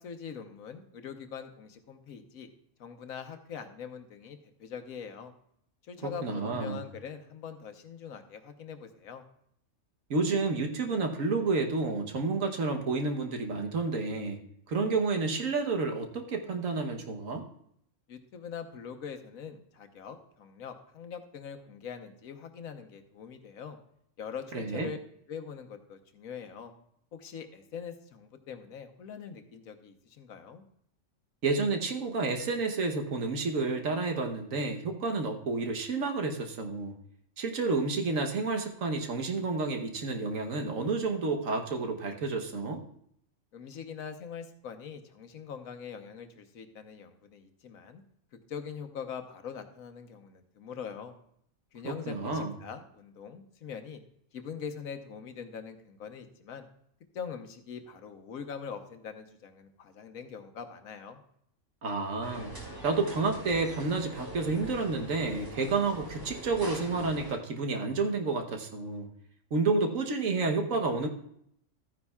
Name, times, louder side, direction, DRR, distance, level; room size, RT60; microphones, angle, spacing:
voice 1, 0.0-2.5 2.8-5.3 5.9-9.2 18.1-23.8 24.2-25.0 25.3-26.7 27.1-30.6 43.5-48.0 48.5-51.2 51.7-54.0 54.3-56.7 57.1-61.2, left 7 dB, 85° left, 7 dB, 1.4 m, -43 dB
voice 2, 6.0-6.8 10.1-14.4 14.7-17.4 24.5-24.9 31.4-36.9 37.4-42.8 51.8-52.5 61.8-62.5 62.8-69.1 69.5-71.1, right 3 dB, 75° right, 4 dB, 1.4 m, -30 dB
sound 1, 62.2-67.3, equal, 15° right, 2.4 m, -42 dB
13.5 x 9.7 x 2.3 m, 0.70 s
omnidirectional pair, 1.4 m